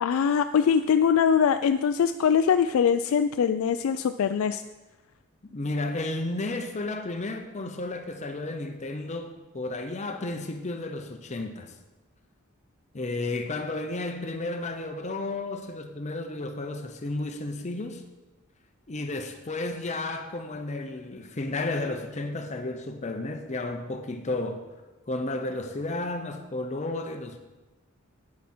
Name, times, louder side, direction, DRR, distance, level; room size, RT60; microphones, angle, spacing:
voice 1, 0.0-4.6, left 7 dB, 80° left, 0.3 m, -22 dB
voice 2, 5.5-11.7 12.9-18.0 18.9-24.6 25.1-27.4, left 2 dB, 35° left, 0.7 m, -32 dB
9.6 x 8.3 x 4.3 m
head